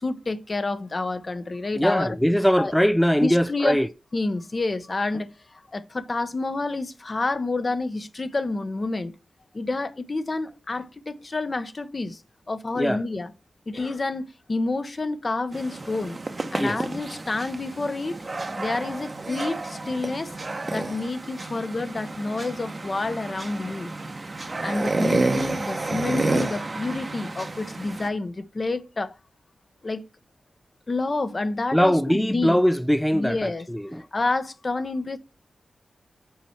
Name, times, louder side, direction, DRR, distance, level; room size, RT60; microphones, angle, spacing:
voice 1, 0.0-2.2 2.6-2.7 3.2-3.8 4.1-9.1 9.5-12.2 12.5-13.3 13.7-16.2 16.5-18.1 18.6-20.3 20.7-23.9 24.6-29.1 29.8-30.0 30.9-32.6 33.1-33.7 34.1-35.2, left 3 dB, 40° left, 0.8 m, -29 dB
voice 2, 1.8-3.9 12.8-13.0 16.6-16.8 31.7-34.0, equal, 5° left, 0.3 m, -21 dB
sound 1, 15.5-28.1, right 2 dB, 40° right, 0.8 m, -30 dB
5.6 x 4.4 x 5.7 m
cardioid pair, 70°, 0 cm